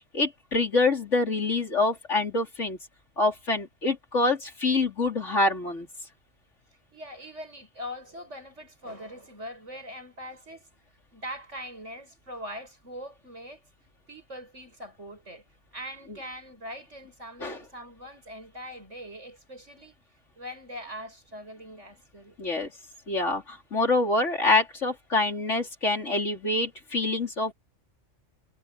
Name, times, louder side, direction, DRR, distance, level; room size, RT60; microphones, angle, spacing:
voice 1, 0.1-2.8 3.2-5.9 17.4-17.6 22.4-22.7 23.1-27.5, left 2 dB, 65° left, 4.1 m, -26 dB
voice 2, 6.9-10.7 11.1-13.6 14.1-15.4 15.7-19.9 20.4-22.4, equal, 65° right, 8.1 m, -42 dB
omnidirectional pair, 1.3 m